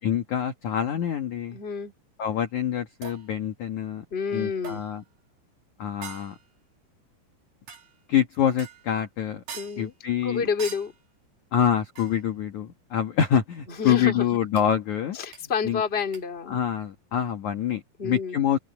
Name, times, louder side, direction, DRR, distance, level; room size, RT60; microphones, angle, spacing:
voice 1, 0.0-1.6 2.2-4.0 4.3-5.0 5.8-6.3 8.1-9.4 9.8-10.5 11.5-15.2 15.6-15.8 16.5-18.6, left 9 dB, 60° left, 2.2 m, -26 dB
voice 2, 1.5-1.9 4.1-4.8 9.5-9.9 10.2-10.9 13.8-14.4 15.1-16.6 18.0-18.4, left 6 dB, 20° left, 2.2 m, -29 dB
sound 1, 3.0-3.4 4.6-5.1 6.0-6.5 7.7-8.0 8.6-9.0 9.5-9.9 10.6-11.0 12.0-12.3 14.6-14.7 15.3-15.4 16.1-16.2, right 7 dB, 50° right, 4.3 m, -42 dB
open air
omnidirectional pair, 5.0 m